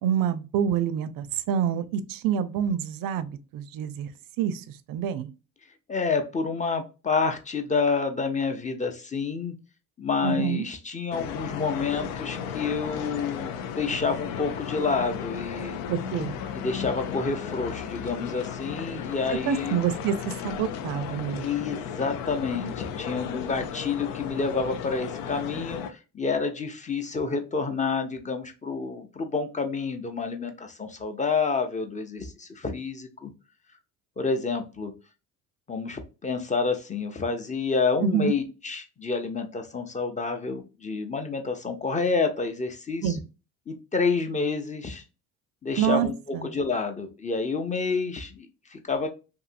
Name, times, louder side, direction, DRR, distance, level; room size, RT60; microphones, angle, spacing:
voice 1, 0.0-4.1 4.4-4.6 4.9-5.3 10.2-10.6 15.9-16.4 19.5-21.5 38.0-38.3 43.0-43.2 45.8-46.1 46.3-46.5, right 9 dB, 55° right, 0.5 m, -27 dB
voice 2, 5.9-9.5 10.0-15.8 16.5-19.8 21.4-33.3 34.2-34.9 35.7-43.2 43.7-45.0 45.6-49.1, left 4 dB, 20° left, 0.6 m, -29 dB
sound 1, 11.1-25.9, left 8 dB, 85° left, 0.5 m, -35 dB
2.7 x 2.6 x 2.5 m
supercardioid pair, 65°, 41 cm